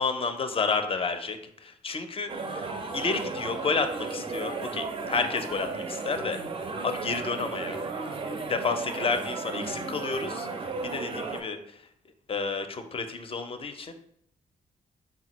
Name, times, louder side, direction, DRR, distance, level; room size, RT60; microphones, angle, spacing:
voice 1, 0.0-6.4 6.8-7.8 8.5-10.5 10.8-11.6 12.3-13.9, left 4 dB, 35° left, 8 dB, 0.4 m, -30 dB
sound 1, 2.3-11.4, right 3 dB, 30° right, 0.4 m, -34 dB
3.6 x 2.1 x 2.9 m, 0.70 s
supercardioid pair, 50°, 17 cm